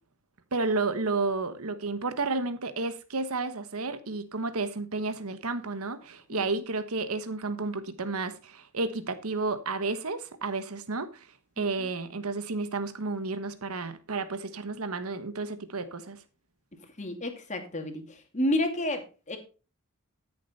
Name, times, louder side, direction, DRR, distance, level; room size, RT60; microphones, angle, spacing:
voice 1, 0.5-11.3 11.6-16.2, right 3 dB, 80° right, 1.2 m, -31 dB
voice 2, 17.0-18.0 18.3-19.4, left 1 dB, 35° left, 2.3 m, -30 dB
13.0 x 7.2 x 4.2 m
head